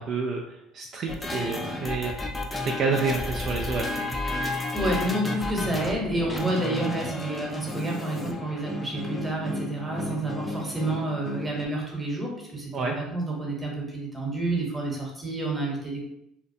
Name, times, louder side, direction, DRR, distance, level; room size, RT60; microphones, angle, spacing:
voice 1, 0.0-4.1 12.7-13.0, right 4 dB, 50° right, 1 dB, 0.3 m, -29 dB
sound 1, 1.1-11.7, left 2 dB, 15° left, 0.4 m, -32 dB
voice 2, 4.7-16.0, right 2 dB, 15° right, -2 dB, 0.9 m, -29 dB
2.5 x 2.2 x 2.6 m, 0.78 s
supercardioid pair, 90°, 0 cm